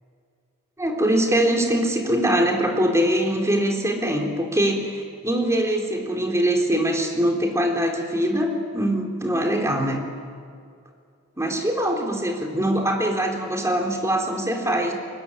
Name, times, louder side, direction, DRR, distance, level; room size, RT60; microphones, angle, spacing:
voice 1, 0.8-10.1 11.4-14.9, right 1 dB, 15° right, 2 dB, 3.6 m, -23 dB
24.5 x 22.0 x 9.8 m, 2.2 s
head